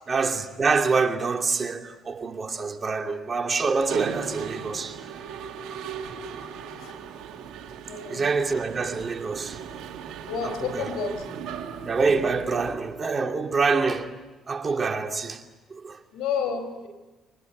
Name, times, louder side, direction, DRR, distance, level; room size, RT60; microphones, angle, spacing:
voice 1, 0.1-5.1 8.1-9.6 10.4-10.9 11.8-14.2 14.5-15.4 15.7-16.0, right 4 dB, 40° right, 2.6 m, -26 dB
Mechanisms, 3.8-12.7, right 7 dB, 70° right, 2.5 m, -38 dB
voice 2, 7.9-8.2 10.3-11.1 16.1-16.9, left 6 dB, 75° left, 4.6 m, -30 dB
25.0 x 20.0 x 9.3 m
hypercardioid pair, 55°, 0 cm